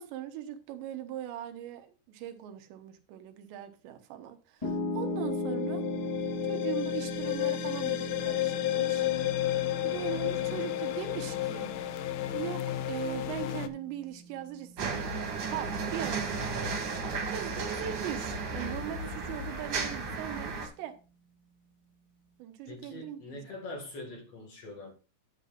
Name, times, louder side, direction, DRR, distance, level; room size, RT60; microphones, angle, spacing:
voice 1, 0.0-5.8 6.5-9.1 9.8-11.7 12.3-16.5 17.3-20.9 22.4-23.4, right 10 dB, 80° right, 3.2 m, -40 dB
Piano, 4.6-16.8, left 1 dB, 10° left, 2.3 m, -38 dB
sound 1, 5.0-13.7, left 14 dB, 85° left, 2.2 m, -32 dB
sound 2, 14.8-20.7, right 4 dB, 45° right, 2.7 m, -34 dB
voice 2, 22.7-24.9, left 2 dB, 45° left, 2.3 m, -44 dB
10.5 x 10.0 x 2.5 m
omnidirectional pair, 5.2 m